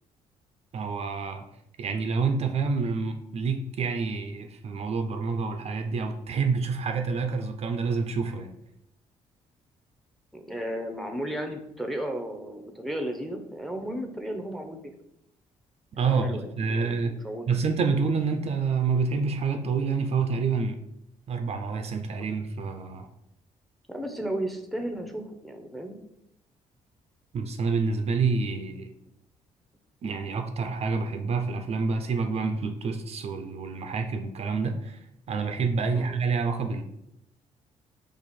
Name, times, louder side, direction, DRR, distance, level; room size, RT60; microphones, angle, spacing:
voice 1, 0.7-1.4 1.8-8.5 16.0-17.2 17.5-20.8 21.3-23.1 27.3-28.9 30.0-35.0 35.3-36.8, right 4 dB, 50° right, 6 dB, 0.5 m, -28 dB
voice 2, 10.3-14.8 16.0-17.5 23.9-25.9 35.9-36.1, right 1 dB, ahead, 5 dB, 0.7 m, -34 dB
4.6 x 2.5 x 4.1 m, 0.80 s
cardioid pair, 85°, 13 cm